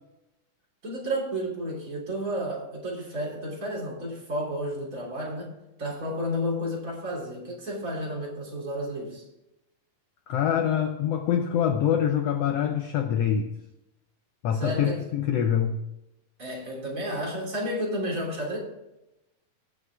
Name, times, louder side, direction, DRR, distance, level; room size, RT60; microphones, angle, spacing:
voice 1, 0.8-9.2 14.5-15.0 16.4-18.6, equal, 25° right, -3 dB, 3.2 m, -32 dB
voice 2, 10.3-13.5 14.4-15.8, left 9 dB, 80° left, 6 dB, 1.4 m, -25 dB
18.5 x 6.5 x 3.5 m, 0.94 s
omnidirectional pair, 3.7 m